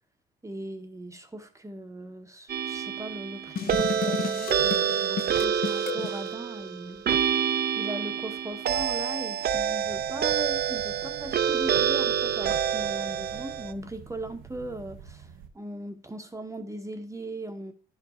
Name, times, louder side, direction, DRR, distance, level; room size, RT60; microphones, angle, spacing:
voice 1, 0.4-7.1 7.7-17.7, right 1 dB, 15° right, 0.8 m, -39 dB
sound 1, 2.5-13.7, right 8 dB, 50° right, 0.5 m, -27 dB
sound 2, 3.6-6.2, left 7 dB, 50° left, 0.6 m, -33 dB
sound 3, 9.8-15.5, right 7 dB, 80° right, 0.8 m, -48 dB
10.0 x 4.6 x 4.2 m
cardioid pair, 90°, 20 cm